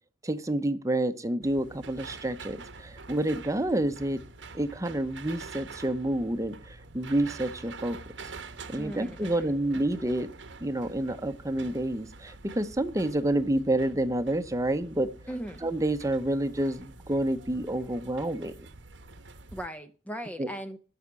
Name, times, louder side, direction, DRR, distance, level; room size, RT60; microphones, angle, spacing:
voice 1, 0.2-4.2 4.5-8.0 8.7-10.3 10.6-15.1 15.6-18.7 20.4-20.5, right 1 dB, 15° right, 0.8 m, -29 dB
sound 1, 1.4-19.7, right 3 dB, 75° right, 1.0 m, -46 dB
voice 2, 8.8-9.5 15.3-15.6 19.5-20.8, equal, 10° left, 0.6 m, -38 dB
12.5 x 5.8 x 8.1 m
head